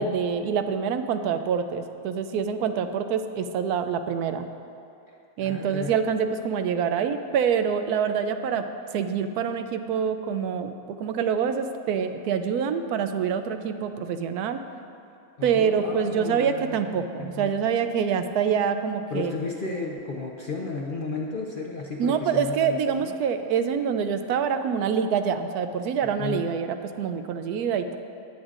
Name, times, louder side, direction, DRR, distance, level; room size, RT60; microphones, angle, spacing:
voice 1, 0.0-4.5 5.4-8.7 8.9-14.6 15.4-19.3 22.0-28.0, right 7 dB, 80° right, 8 dB, 1.1 m, -26 dB
voice 2, 5.4-5.9 15.4-16.8 17.1-17.6 19.1-23.1 26.2-26.4, left 3 dB, 45° left, -1 dB, 0.7 m, -33 dB
19.0 x 7.9 x 2.5 m, 2.7 s
omnidirectional pair, 1.6 m